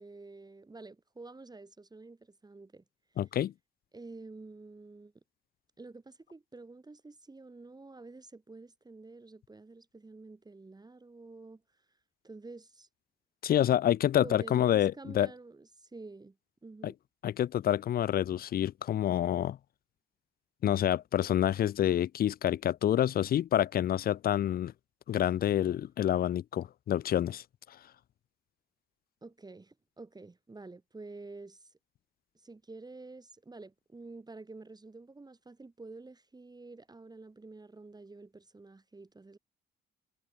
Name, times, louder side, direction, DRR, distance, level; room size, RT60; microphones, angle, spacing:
voice 1, 0.0-2.8 3.9-5.1 5.8-11.6 12.2-12.9 14.2-16.4 16.6-16.9 29.2-31.7 32.3-39.4, right 3 dB, 20° right, 2.3 m, -49 dB
voice 2, 3.2-3.5 13.4-15.3 16.8-16.9 17.2-19.6 20.6-24.7 25.1-27.4, left 11 dB, 50° left, 0.4 m, -28 dB
cardioid pair, 90°, 20 cm